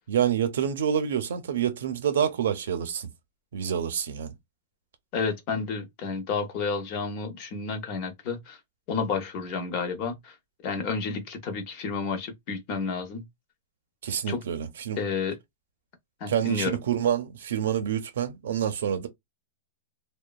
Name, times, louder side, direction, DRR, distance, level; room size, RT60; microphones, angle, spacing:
voice 1, 0.1-3.1 3.5-4.3 14.0-15.0 16.3-19.1, right 9 dB, 80° right, 0.5 m, -27 dB
voice 2, 5.1-8.6 8.9-10.3 10.6-13.2 14.3-14.4 15.0-15.4 16.2-16.8, left 5 dB, 30° left, 0.6 m, -31 dB
2.9 x 2.1 x 2.3 m
supercardioid pair, 175°, 0 cm